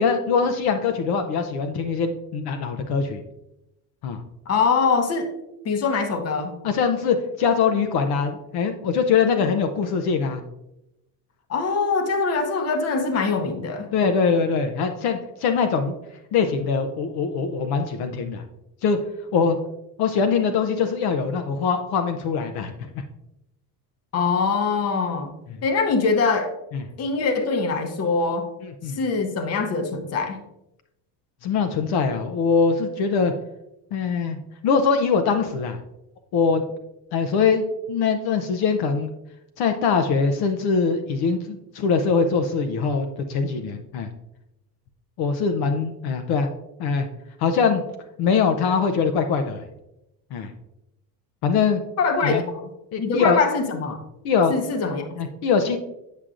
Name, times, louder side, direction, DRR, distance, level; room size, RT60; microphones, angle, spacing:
voice 1, 0.0-3.2 4.0-4.2 6.6-10.4 13.9-15.9 16.3-18.4 18.8-19.0 19.3-19.6 20.0-23.0 26.7-26.8 28.6-29.0 31.4-33.3 33.9-34.4 34.6-35.8 36.3-36.6 37.1-39.1 39.6-41.4 41.7-44.1 45.2-46.5 46.8-47.1 47.4-47.8 48.2-49.6 50.3-50.5 51.4-51.8 52.2-52.4 52.9-53.4 54.2-54.5 55.2-55.8, left 5 dB, 65° left, 6 dB, 0.7 m, -22 dB
voice 2, 4.5-5.3 5.6-6.5 11.5-13.9 24.1-25.3 25.6-26.5 27.0-28.5 28.9-30.4 52.0-52.6 53.0-54.0 54.5-55.1, left 4 dB, 35° left, 6 dB, 0.9 m, -23 dB
8.4 x 6.1 x 2.5 m, 0.88 s
cardioid pair, 150°, 41 cm